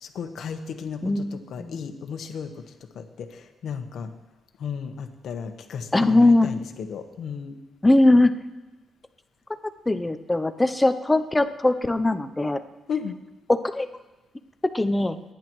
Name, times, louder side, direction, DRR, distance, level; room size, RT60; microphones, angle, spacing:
voice 1, 0.0-2.5 2.9-4.1 4.6-7.6 12.9-13.2, left 6 dB, 70° left, 7 dB, 1.2 m, -34 dB
voice 2, 1.0-1.7 5.9-6.5 7.8-8.3 9.9-12.6 13.5-13.9 14.6-15.2, left 2 dB, 10° left, 10 dB, 0.6 m, -20 dB
29.0 x 10.5 x 3.1 m, 1.1 s
cardioid pair, 145°, 0 cm